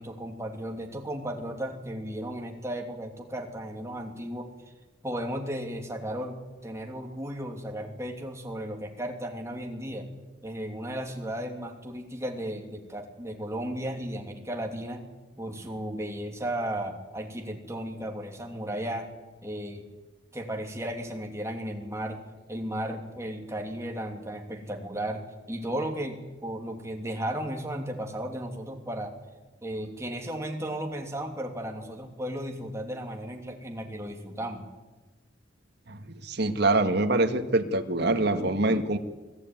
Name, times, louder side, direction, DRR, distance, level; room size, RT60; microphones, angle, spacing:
voice 1, 0.0-4.5 5.0-10.1 10.4-15.1 15.4-19.1 19.4-19.8 20.3-22.2 22.5-29.1 29.6-34.7, right 1 dB, 15° right, 2 dB, 2.9 m, -35 dB
voice 2, 35.9-39.0, right 2 dB, 60° right, 8 dB, 1.8 m, -25 dB
24.5 x 15.5 x 9.4 m, 1.2 s
head